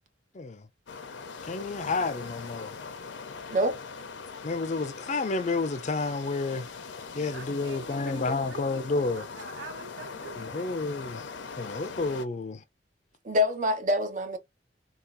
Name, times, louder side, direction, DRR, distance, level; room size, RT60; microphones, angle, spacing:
sound 1, 0.9-12.2, left 5 dB, 90° left, 0.6 m, -41 dB
voice 1, 1.4-2.7 4.4-6.7 7.1-9.2 10.4-11.3 11.6-12.6, left 3 dB, 40° left, 0.5 m, -30 dB
voice 2, 7.2-10.8, right 4 dB, 75° right, 0.9 m, -45 dB
voice 3, 13.2-14.4, left 1 dB, 40° right, 0.7 m, -25 dB
3.5 x 2.3 x 2.7 m
head